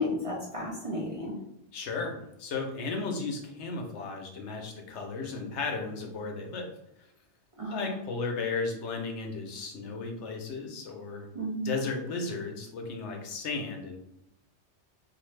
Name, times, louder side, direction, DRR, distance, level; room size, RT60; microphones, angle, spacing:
voice 1, 0.0-1.4 7.6-8.0 11.3-11.7, left 1 dB, 40° right, -4 dB, 0.5 m, -32 dB
voice 2, 1.7-6.7 7.7-11.3 11.6-14.0, left 4 dB, 80° left, 3 dB, 0.9 m, -35 dB
2.5 x 2.5 x 3.1 m, 0.80 s
omnidirectional pair, 1.2 m